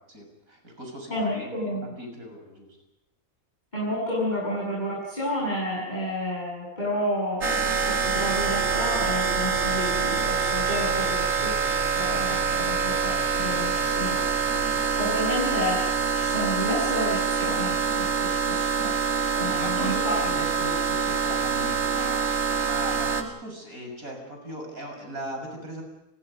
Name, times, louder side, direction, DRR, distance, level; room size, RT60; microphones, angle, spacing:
voice 1, 0.0-2.7 14.5-14.9 19.6-22.2 22.6-25.8, right 1 dB, 85° right, 2 dB, 7.3 m, -38 dB
voice 2, 1.1-1.8 3.7-14.2 15.0-15.8 16.1-18.9 19.3-20.2, equal, 30° left, -5 dB, 8.0 m, -30 dB
sound 1, 7.4-23.2, right 6 dB, 55° right, 2.4 m, -25 dB
30.0 x 22.5 x 5.3 m, 0.88 s
omnidirectional pair, 1.4 m